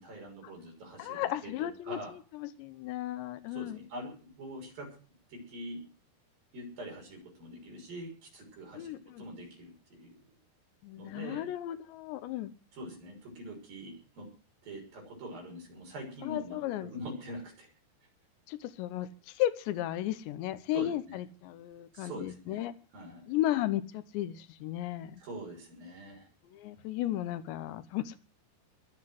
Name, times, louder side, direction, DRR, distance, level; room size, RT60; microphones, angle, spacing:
voice 1, 0.0-2.1 3.5-5.0 5.3-5.9 6.5-10.1 11.0-11.5 12.7-14.3 14.6-17.7 20.7-21.2 21.9-22.6 22.9-23.4 25.2-26.3, right 1 dB, 55° right, 0 dB, 7.8 m, -44 dB
voice 2, 1.0-2.0 2.3-3.8 8.8-9.2 10.8-12.5 16.2-16.9 18.5-22.7 23.3-25.2 26.5-28.2, left 13 dB, 85° left, 14 dB, 3.2 m, -34 dB
22.0 x 7.8 x 7.6 m, 0.37 s
omnidirectional pair, 4.9 m